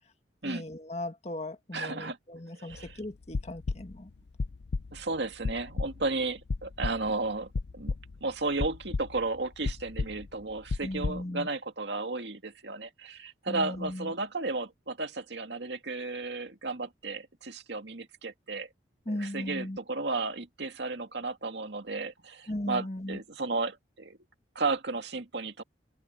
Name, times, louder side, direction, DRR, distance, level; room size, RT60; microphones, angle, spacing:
voice 1, 0.4-4.1 10.8-11.5 13.5-14.1 19.1-19.8 22.5-23.2, left 1 dB, 35° left, 1.7 m, -37 dB
voice 2, 1.7-2.2 2.6-3.0 4.9-7.9 8.2-18.7 19.1-24.2 24.6-25.6, right 3 dB, 70° right, 2.1 m, -34 dB
sound 1, 2.7-2.9 3.2-4.1 4.4-5.0 5.4-6.1 6.5-7.2 7.5-8.2 8.6-9.4 9.6-11.2, left 3 dB, 65° left, 0.5 m, -33 dB
head